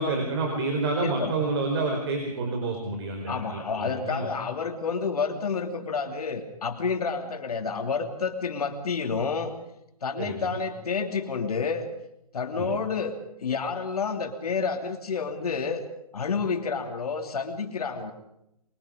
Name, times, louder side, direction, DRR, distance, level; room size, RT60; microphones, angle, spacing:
voice 1, 0.0-4.3 10.2-10.6 12.5-12.7, right 3 dB, 40° right, 2 dB, 4.7 m, -29 dB
voice 2, 1.0-1.3 3.3-9.5 10.0-11.9 12.3-13.1 13.4-15.9 16.1-18.1, left 5 dB, 70° left, 5 dB, 2.9 m, -29 dB
25.5 x 23.5 x 5.2 m, 0.81 s
hypercardioid pair, 150°, 20 cm